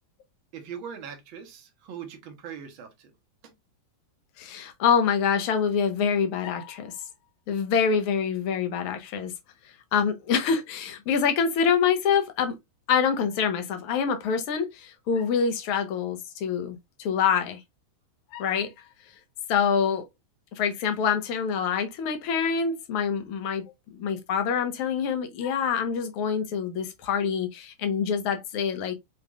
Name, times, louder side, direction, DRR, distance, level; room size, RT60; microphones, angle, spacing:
voice 1, 0.5-3.1 3.4-3.5, right 7 dB, 45° right, 1.3 m, -41 dB
voice 2, 4.4-6.9 7.5-9.3 9.9-12.6 12.9-17.6 18.3-18.7 19.5-20.0 20.6-23.6 23.9-28.9, left 6 dB, 45° left, 1.0 m, -26 dB
4.7 x 3.4 x 2.4 m
figure-of-eight pair, 90°, 0 cm